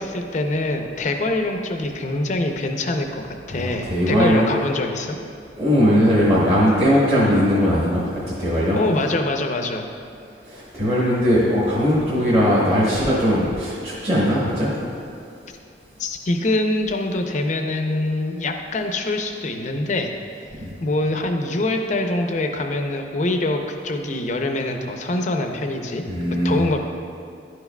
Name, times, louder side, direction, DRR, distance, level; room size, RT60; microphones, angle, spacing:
voice 1, 0.0-5.2 8.7-9.9 16.0-20.1 20.8-26.0 26.4-26.8, left 2 dB, 40° left, 4 dB, 0.5 m, -24 dB
voice 2, 3.5-4.5 5.6-8.8 10.4-14.7 20.6-20.7 26.1-26.6, equal, 35° right, -8 dB, 1.1 m, -19 dB
10.5 x 4.7 x 2.2 m, 2.4 s
head